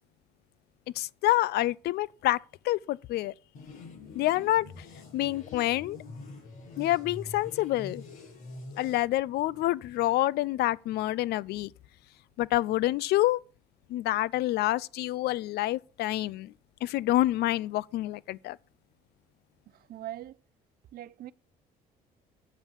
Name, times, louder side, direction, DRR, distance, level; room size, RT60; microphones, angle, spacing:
voice 1, 1.0-2.4 2.6-3.3 4.1-4.8 5.1-6.0 6.8-8.0 8.8-11.7 12.4-13.4 13.9-16.5 16.8-18.6, left 15 dB, 70° left, 0.5 m, -27 dB
sound 1, 3.5-9.0, left 3 dB, 55° left, 7.6 m, -45 dB
voice 2, 19.7-20.4 20.9-21.3, right 13 dB, 65° right, 0.7 m, -41 dB
9.2 x 8.0 x 7.3 m
cardioid pair, 110°, 17 cm